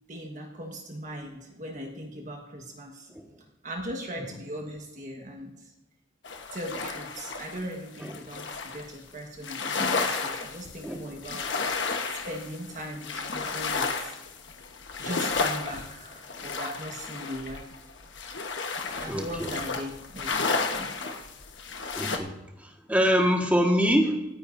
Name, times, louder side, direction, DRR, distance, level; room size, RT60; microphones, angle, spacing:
voice 1, 0.1-3.1 3.6-5.5 6.5-11.5 12.1-14.2 15.0-17.7 19.0-20.9, equal, 40° right, 1 dB, 1.5 m, -39 dB
sound 1, 6.2-8.9 9.4-22.2, left 4 dB, 65° left, 1.3 m, -32 dB
voice 2, 19.1-19.5 22.0-24.2, equal, 10° right, 2 dB, 1.7 m, -25 dB
27.0 x 9.8 x 2.7 m, 1.0 s
head